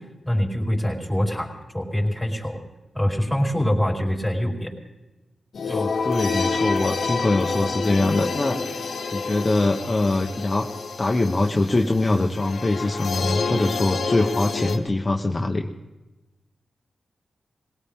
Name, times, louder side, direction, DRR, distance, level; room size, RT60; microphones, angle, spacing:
voice 1, 0.2-2.6 2.9-4.7 5.6-5.8, equal, 5° left, -1 dB, 4.4 m, -24 dB
sound 1, 5.5-14.8, left 4 dB, 75° left, 1.2 m, -28 dB
voice 2, 5.7-8.6 9.1-10.7 11.0-15.7, left 2 dB, 35° left, 2 dB, 1.0 m, -23 dB
20.5 x 18.0 x 3.7 m, 1.1 s
cardioid pair, 55°, 0 cm